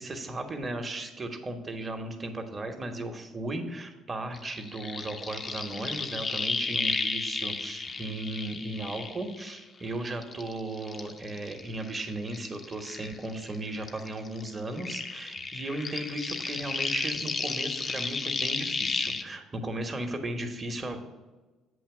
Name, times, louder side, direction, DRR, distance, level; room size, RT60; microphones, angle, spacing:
voice 1, 0.0-21.0, right 2 dB, 30° right, 5 dB, 1.0 m, -36 dB
sound 1, 4.3-9.9 10.2-13.6 13.8-19.2, left 4 dB, 35° left, 0.5 m, -33 dB
7.9 x 3.0 x 5.9 m, 1.2 s
supercardioid pair, 85°, 0 cm